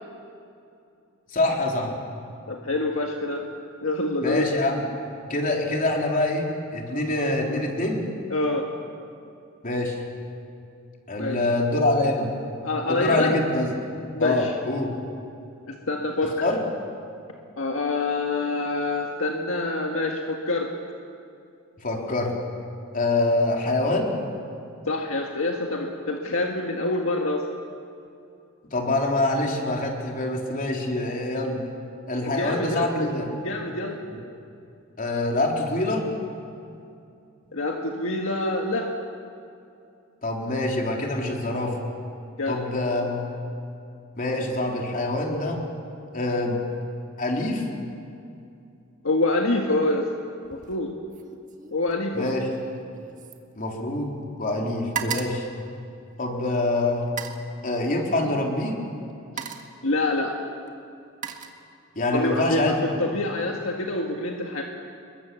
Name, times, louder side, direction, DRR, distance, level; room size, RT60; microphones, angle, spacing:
voice 1, 1.3-2.0 4.2-4.8 5.3-8.1 9.6-10.0 11.1-12.3 12.9-13.7 14.2-14.9 16.2-16.6 21.8-22.3 22.9-24.1 28.7-31.6 32.1-33.3 35.0-36.1 40.2-41.8 42.5-43.2 44.2-45.6 46.1-46.6 47.2-47.7 52.1-52.5 53.6-55.5 56.2-57.1 57.6-58.8 62.0-63.1, left 2 dB, 40° left, 0 dB, 3.7 m, -25 dB
voice 2, 2.5-3.4 3.8-4.4 8.3-8.7 11.2-11.4 12.6-13.4 14.1-14.5 15.7-16.5 17.6-20.7 24.9-27.4 32.2-33.1 33.4-34.0 37.5-38.9 42.4-42.7 49.0-50.1 50.5-50.9 51.7-52.3 59.3-59.5 59.8-60.3 62.1-64.6, left 2 dB, 70° left, 1 dB, 1.8 m, -26 dB
sound 1, 50.4-50.8 51.1-54.2 54.5-56.4 57.0-57.5 58.5-58.7 59.1-59.8 60.7-62.1 62.4-62.8, right 7 dB, 40° right, 1.6 m, -37 dB
27.5 x 22.5 x 7.1 m, 2.6 s
head